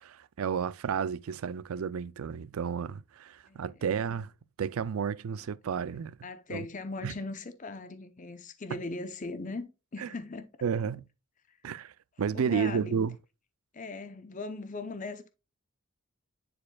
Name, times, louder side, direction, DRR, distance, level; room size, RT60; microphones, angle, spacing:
voice 1, 0.0-4.3 4.6-6.2 6.5-6.7 7.0-7.1 10.0-10.1 10.6-11.0 11.6-11.9 12.2-13.2, right 7 dB, 85° right, 0.4 m, -31 dB
voice 2, 6.2-10.5 11.5-11.6 12.3-13.0 13.7-15.3, left 3 dB, 35° left, 0.7 m, -39 dB
9.9 x 4.2 x 2.3 m
head